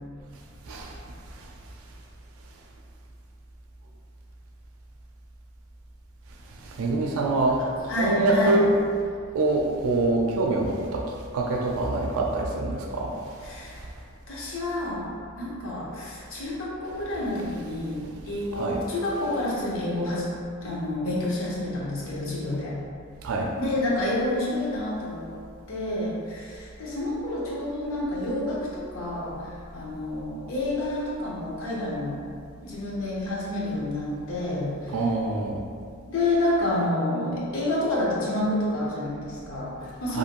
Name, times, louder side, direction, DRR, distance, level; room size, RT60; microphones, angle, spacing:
voice 1, 6.7-8.7 9.3-11.1 11.3-13.2 18.5-18.8 23.2-23.5 34.9-35.6 40.1-40.2, right 2 dB, 80° right, 1 dB, 0.4 m, -25 dB
voice 2, 7.6-8.6 13.4-13.9 14.3-22.8 23.6-25.4 25.7-32.2 32.6-34.9 36.1-40.2, left 1 dB, 70° left, -5 dB, 0.7 m, -29 dB
2.6 x 2.5 x 2.9 m, 2.2 s
head